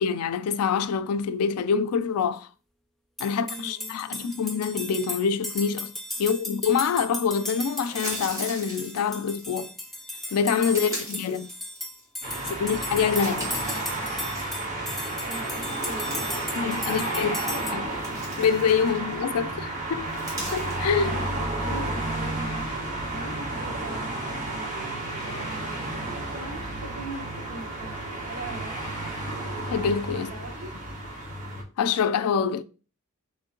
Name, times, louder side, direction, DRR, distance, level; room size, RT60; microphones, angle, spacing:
voice 1, 0.0-2.5 3.2-5.9 6.2-9.7 10.3-11.5 12.5-13.5 16.6-17.3 17.7-17.9 18.4-20.1 20.4-21.2 29.7-30.3 31.8-32.6, left 6 dB, 85° left, 0.4 m, -26 dB
sound 1, 3.2-17.7, left 1 dB, ahead, 0.3 m, -36 dB
voice 2, 3.3-4.2 6.2-6.3 10.7-11.2 12.4-12.8 14.9-17.9 21.1-28.9 30.1-30.8, right 2 dB, 75° right, 1.1 m, -42 dB
sound 2, 7.4-9.4 10.2-12.2 12.6-14.7 15.1-16.5 16.8-17.0 17.6-19.3 20.0-20.9, right 1 dB, 15° right, 1.6 m, -41 dB
sound 3, 12.2-31.6, right 2 dB, 40° right, 1.4 m, -32 dB
3.6 x 3.1 x 3.8 m
head